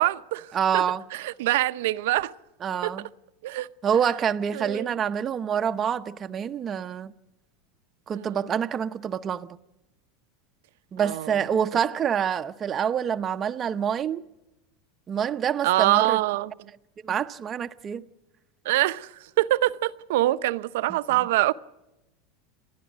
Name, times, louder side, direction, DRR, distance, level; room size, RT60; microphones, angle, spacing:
voice 1, 0.0-0.8 1.1-2.3 2.8-2.9 3.4-3.7 4.5-4.9 8.1-8.4 11.0-11.4 15.6-16.7 18.6-19.1 19.4-21.5, right 16 dB, 75° right, 0.7 m, -24 dB
voice 2, 0.5-1.0 2.6-3.0 3.8-7.1 8.1-9.5 10.9-14.2 15.1-16.2 17.0-18.0, right 8 dB, 30° right, 0.7 m, -26 dB
29.5 x 11.0 x 9.4 m
supercardioid pair, 130°, 0 cm